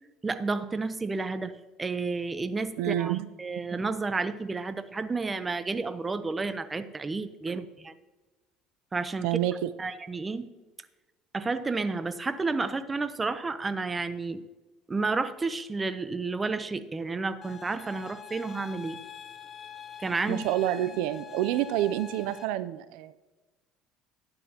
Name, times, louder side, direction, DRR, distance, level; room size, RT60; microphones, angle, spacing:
voice 1, 0.2-1.5 1.8-7.9 8.9-9.4 9.8-10.5 11.3-14.4 14.9-19.0 20.0-20.4, right 3 dB, 20° right, 12 dB, 0.7 m, -31 dB
voice 2, 2.8-3.3 7.5-7.6 9.2-9.7 20.3-23.1, right 13 dB, 80° right, 14 dB, 0.5 m, -28 dB
sound 1, 17.4-22.5, left 8 dB, 35° left, 0.8 m, -44 dB
12.5 x 10.0 x 2.9 m, 1.2 s
supercardioid pair, 105°, 0 cm